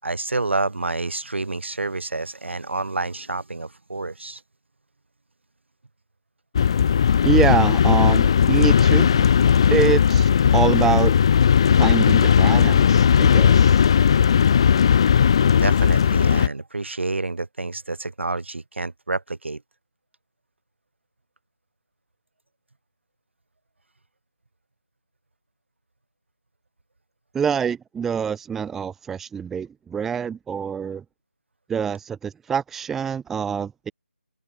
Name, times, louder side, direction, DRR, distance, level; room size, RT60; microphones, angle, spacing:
voice 1, 0.0-4.4 15.6-19.6, right 3 dB, 70° right, 4.5 m, -28 dB
sound 1, 6.5-16.5, left 7 dB, 25° left, 0.6 m, -17 dB
voice 2, 7.2-9.2 9.7-11.1 11.8-13.9 27.3-31.0 31.7-33.9, right 7 dB, 5° right, 1.2 m, -25 dB
figure-of-eight pair, 165°, 7 cm